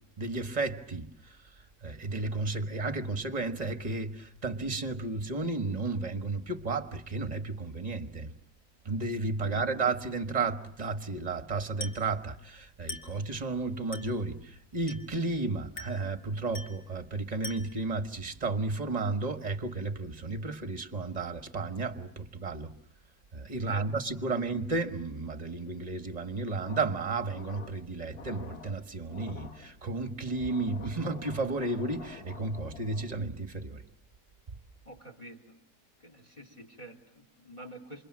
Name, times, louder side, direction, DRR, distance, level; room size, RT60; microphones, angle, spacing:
voice 1, 0.2-1.4 1.8-8.3 8.8-22.7 23.3-33.8, right 3 dB, 25° right, 1.6 m, -33 dB
Glass, 11.8-12.2 12.9-13.2 13.9-14.2 14.9-15.2 15.8-16.1 16.5-16.9 17.4-17.9, left 2 dB, 55° left, 2.9 m, -42 dB
sound 1, 26.5-33.4, left 6 dB, 75° left, 2.0 m, -49 dB
voice 2, 34.9-35.6 36.0-38.1, equal, 25° left, 3.6 m, -47 dB
28.0 x 27.0 x 7.6 m
omnidirectional pair, 1.7 m